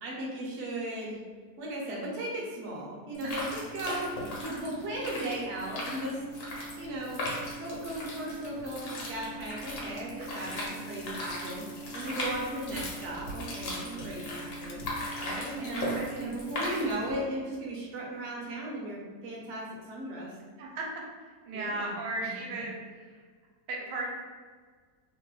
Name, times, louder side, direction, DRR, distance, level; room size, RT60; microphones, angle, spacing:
voice 1, 0.0-1.2 1.6-4.1 4.4-6.2 6.8-7.2 7.6-11.6 11.9-14.8 15.2-20.3 21.5-21.9 22.2-22.5, right 1 dB, 55° right, -4 dB, 0.8 m, -36 dB
sound 1, 3.1-17.2, left 1 dB, 65° left, 1.2 m, -38 dB
sound 2, 10.3-16.9, left 4 dB, 90° left, 1.2 m, -52 dB
voice 2, 15.5-16.3 20.6-20.8 21.4-22.7 23.7-24.1, right 2 dB, 75° right, -1 dB, 1.2 m, -36 dB
3.0 x 2.1 x 3.0 m, 1.5 s
omnidirectional pair, 1.9 m